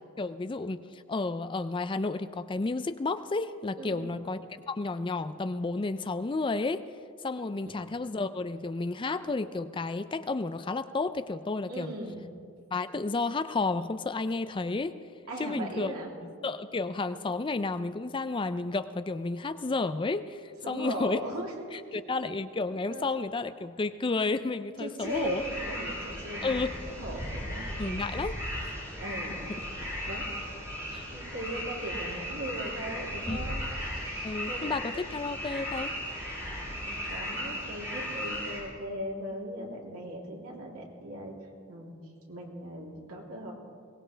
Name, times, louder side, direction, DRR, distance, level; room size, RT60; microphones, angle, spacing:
voice 1, 0.2-4.4 4.7-6.8 7.2-11.9 12.7-15.0 15.4-15.9 16.4-21.2 21.7-25.4 26.4-26.7 27.8-28.4 29.8-29.9 30.9-31.0 33.3-33.4 34.2-35.9, left 3 dB, 20° left, 12 dB, 0.4 m, -31 dB
voice 2, 3.8-4.2 7.7-7.8 11.7-12.2 15.3-16.1 16.7-16.8 20.6-22.2 22.9-23.1 24.8-28.1 29.0-29.6 30.1-30.5 30.9-34.8 36.8-41.3 41.7-42.0 42.3-43.5, right 1 dB, 85° right, -3 dB, 3.3 m, -39 dB
sound 1, 25.0-38.6, equal, 15° right, 5.4 m, -36 dB
22.5 x 18.5 x 3.4 m, 2.3 s
head